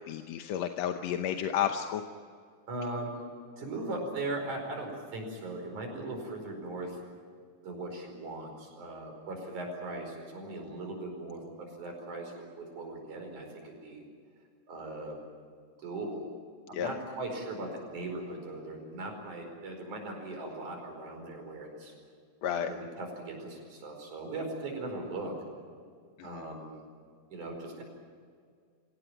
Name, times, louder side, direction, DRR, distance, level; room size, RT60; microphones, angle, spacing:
voice 1, 0.1-2.0 16.7-16.9 22.4-22.7 26.2-26.4, left 9 dB, 70° left, 6 dB, 2.0 m, -31 dB
voice 2, 2.7-3.3 3.6-7.0 7.6-14.1 14.7-15.2 15.8-16.3 16.7-21.9 22.4-25.3 26.2-26.8 27.3-27.8, right 2 dB, 85° right, 3 dB, 6.4 m, -39 dB
25.0 x 17.5 x 9.0 m, 2.1 s
omnidirectional pair, 3.4 m